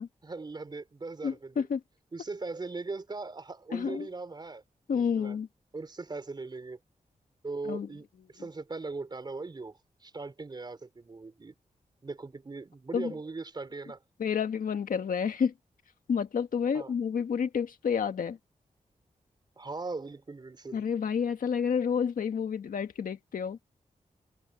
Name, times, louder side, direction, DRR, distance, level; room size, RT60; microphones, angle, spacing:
voice 1, 0.2-1.7 2.1-4.6 4.9-5.4 5.7-6.8 7.4-11.5 12.0-14.0 16.7-16.9 19.6-20.8, right 3 dB, 30° right, 4.4 m, -39 dB
voice 2, 1.2-1.8 3.7-4.1 4.9-5.5 7.7-7.9 12.9-13.1 14.2-15.5 16.1-18.4 20.7-23.6, left 7 dB, 90° left, 1.7 m, -29 dB
wide cardioid pair, 145°, 14 cm